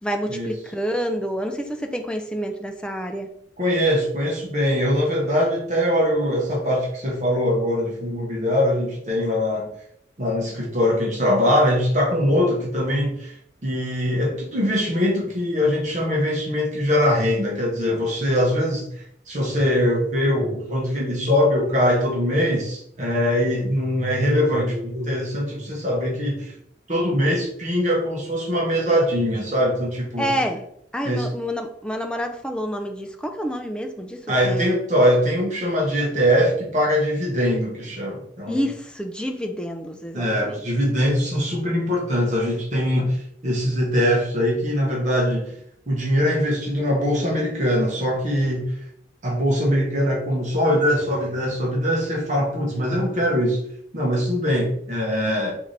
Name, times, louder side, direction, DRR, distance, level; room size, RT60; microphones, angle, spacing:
voice 1, 0.0-3.3 30.2-30.7 30.9-34.7 38.5-40.6, equal, 5° left, 5 dB, 0.3 m, -28 dB
voice 2, 3.6-9.7 10.2-13.3 13.6-26.6 26.9-30.3 31.0-31.3 34.3-38.6 40.1-45.5 45.9-48.8 49.2-53.6 53.9-55.5, equal, 40° right, -2 dB, 0.8 m, -22 dB
3.2 x 2.6 x 3.8 m, 0.69 s
head